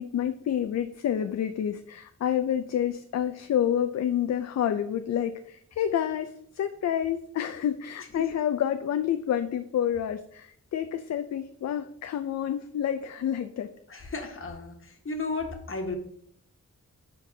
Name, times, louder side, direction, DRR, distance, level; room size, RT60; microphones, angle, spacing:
voice 1, 0.0-13.7, left 9 dB, 65° left, 9 dB, 0.4 m, -29 dB
voice 2, 13.9-16.0, left 3 dB, 45° left, 3 dB, 1.4 m, -34 dB
9.8 x 3.8 x 2.7 m, 0.67 s
wide cardioid pair, 95°, 29 cm